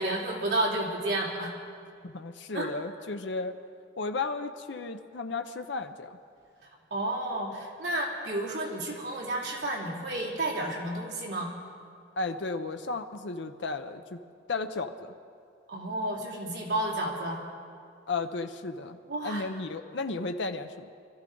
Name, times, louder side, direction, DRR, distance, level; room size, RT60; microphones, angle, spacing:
voice 1, 0.0-1.5 2.5-2.7 6.9-11.5 15.7-17.4 19.1-19.4, right 1 dB, 60° right, -3 dB, 3.1 m, -31 dB
voice 2, 2.0-3.6 4.0-6.2 12.2-14.2 14.5-15.1 18.1-19.0 19.2-20.9, left 3 dB, 70° left, 7 dB, 0.7 m, -34 dB
23.5 x 14.0 x 3.9 m, 2.3 s
head